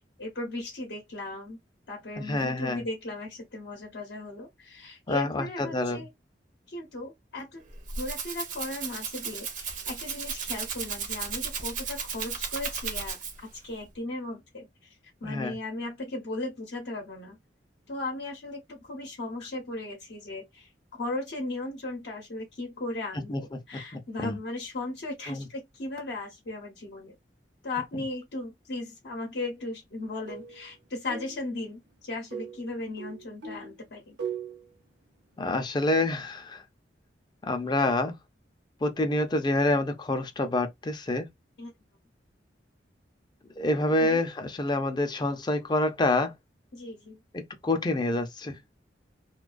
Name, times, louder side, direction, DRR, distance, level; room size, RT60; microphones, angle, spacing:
voice 1, 0.2-1.6 1.9-6.1 6.7-7.6 8.0-14.9 15.2-17.4 17.9-27.2 27.6-34.1 41.6-41.7 44.0-44.2 46.7-47.2, left 2 dB, 65° left, 0.7 m, -37 dB
voice 2, 2.2-2.8 5.1-6.0 15.2-15.6 23.3-23.4 23.7-24.4 25.3-25.5 35.4-36.6 37.4-38.1 38.8-41.3 43.6-46.3 47.3-48.6, left 2 dB, 25° left, 0.4 m, -27 dB
Rattle (instrument), 7.6-13.6, right 6 dB, 45° right, 0.5 m, -35 dB
sound 1, 30.1-30.7 31.1-31.5 32.3-33.8 34.2-34.7, right 6 dB, 80° right, 0.7 m, -39 dB
2.2 x 2.2 x 2.4 m
head